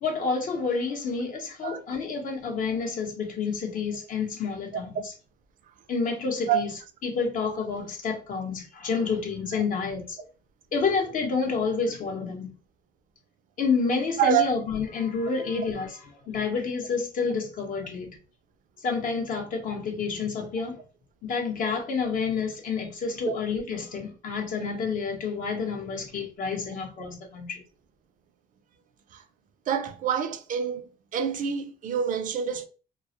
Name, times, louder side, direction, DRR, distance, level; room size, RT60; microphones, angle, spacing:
voice 1, 0.0-5.1 5.9-6.7 7.0-10.2 10.7-12.5 13.6-16.0 16.3-18.2 18.8-20.8 21.2-27.6, left 5 dB, 55° left, 0.8 m, -29 dB
voice 2, 14.2-14.5 15.6-15.7 23.3-23.4 29.7-30.8 31.1-32.7, right 8 dB, 50° right, 0.5 m, -26 dB
2.2 x 2.0 x 2.8 m
cardioid pair, 110°, 17 cm